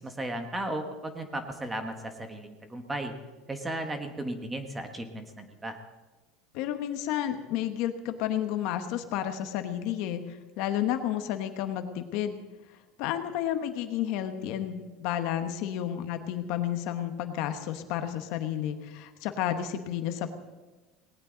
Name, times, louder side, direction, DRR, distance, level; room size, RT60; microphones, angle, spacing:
voice 1, 0.0-3.1 3.5-5.8, right 1 dB, 10° right, 6 dB, 1.4 m, -35 dB
voice 2, 6.5-12.4 13.0-20.3, left 11 dB, 55° left, 8 dB, 1.3 m, -31 dB
19.0 x 18.5 x 4.0 m, 1.2 s
cardioid pair, 165°, 0 cm